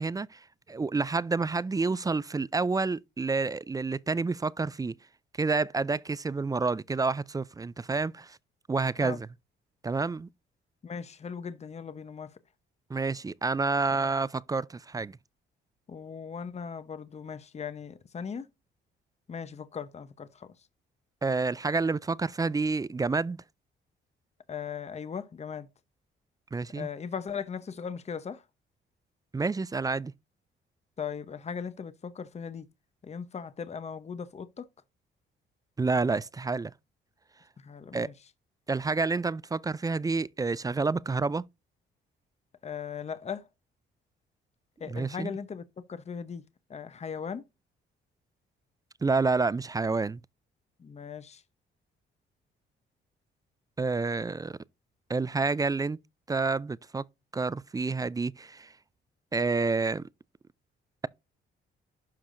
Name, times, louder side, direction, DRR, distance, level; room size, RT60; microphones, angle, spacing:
voice 1, 0.0-4.9 5.4-8.4 8.7-9.3 9.8-10.3 12.9-15.2 21.2-23.4 26.5-26.9 29.3-30.1 35.8-36.7 37.9-38.1 38.7-41.4 44.9-45.4 49.0-50.2 53.8-54.6 55.1-56.0 56.3-57.0 57.3-58.7 59.3-60.0, right 4 dB, 20° right, 0.4 m, -29 dB
voice 2, 10.8-12.3 13.9-14.1 15.9-18.5 19.3-20.5 24.5-25.7 26.7-28.4 31.0-32.7 33.0-34.7 37.6-38.1 42.6-43.5 44.8-45.6 45.9-46.4 46.7-47.4 50.8-51.4, left 6 dB, 35° left, 0.9 m, -38 dB
11.5 x 4.8 x 2.6 m
cardioid pair, 90°, 20 cm